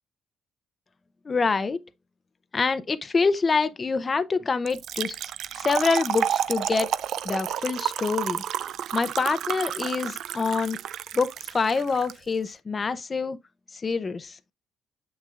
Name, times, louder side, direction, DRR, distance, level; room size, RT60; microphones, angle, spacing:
voice 1, 1.3-1.8 2.5-5.2 5.6-6.9 7.2-8.4 8.9-10.8 11.1-13.4 13.7-14.4, left 4 dB, 35° left, 0.6 m, -26 dB
Trickle dribble / Fill (with liquid), 4.7-12.1, right 10 dB, 75° right, 0.3 m, -31 dB
7.3 x 6.2 x 2.4 m
cardioid pair, 90°, 0 cm